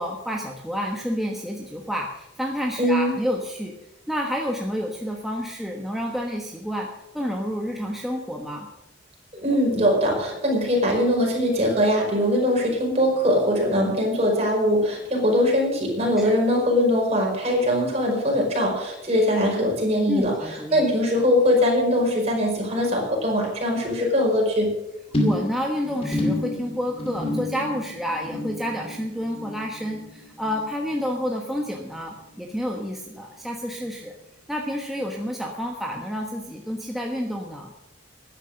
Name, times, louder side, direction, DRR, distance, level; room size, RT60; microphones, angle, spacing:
voice 1, 0.0-3.7 4.1-8.7 16.2-16.3 20.1-20.8 25.2-34.1 34.5-37.7, equal, ahead, 0 dB, 1.3 m, -29 dB
voice 2, 2.8-3.2 9.3-24.7, equal, 35° right, -1 dB, 5.3 m, -21 dB
sound 1, 25.1-31.7 32.0-32.4 32.7-32.8, left 1 dB, 30° left, 2.5 m, -30 dB
14.0 x 10.5 x 6.4 m, 0.88 s
head